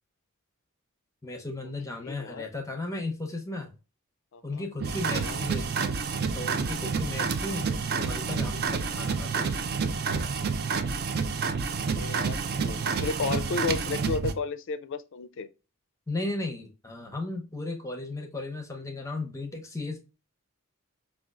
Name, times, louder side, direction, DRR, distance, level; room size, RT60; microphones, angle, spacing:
voice 1, 1.2-3.7 4.4-5.7 6.3-7.6 8.0-9.6 16.1-20.0, left 2 dB, 15° left, 0.6 m, -35 dB
voice 2, 2.0-2.4 4.3-4.6 5.1-5.4 9.7-9.8 11.9-15.5, left 4 dB, 60° left, 0.4 m, -33 dB
sound 1, 4.8-14.3, right 5 dB, 45° right, 0.4 m, -29 dB
5.0 x 2.4 x 2.3 m
head